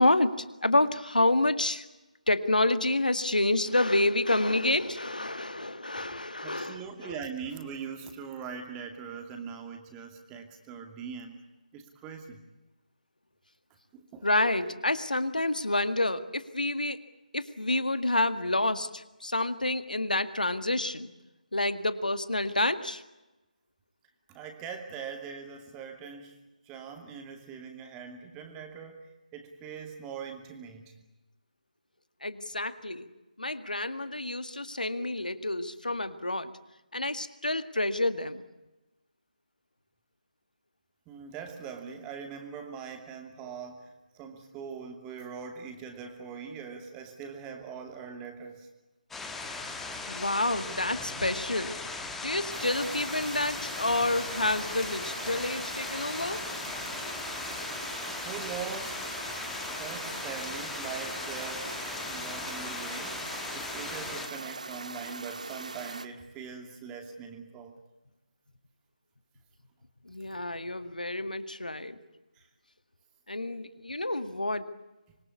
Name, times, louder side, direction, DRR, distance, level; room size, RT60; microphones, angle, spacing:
voice 1, 0.0-1.9 2.3-7.2 14.2-17.0 17.3-21.1 21.5-23.0 32.2-33.1 33.4-36.5 36.9-38.4 43.4-43.5 50.1-51.8 52.2-56.5 70.1-72.0 73.3-74.7, left 2 dB, 75° left, 11 dB, 2.0 m, -28 dB
voice 2, 6.4-11.4 11.7-12.4 13.9-14.3 24.3-26.4 26.7-30.8 41.1-48.7 57.9-61.8 62.0-67.8, right 6 dB, 15° right, 5 dB, 2.5 m, -42 dB
sound 1, 49.1-64.3, left 3 dB, 5° left, 1.7 m, -38 dB
sound 2, 52.5-66.1, right 3 dB, 60° right, 1.8 m, -41 dB
26.0 x 23.0 x 8.5 m, 1.0 s
figure-of-eight pair, 150°, 4 cm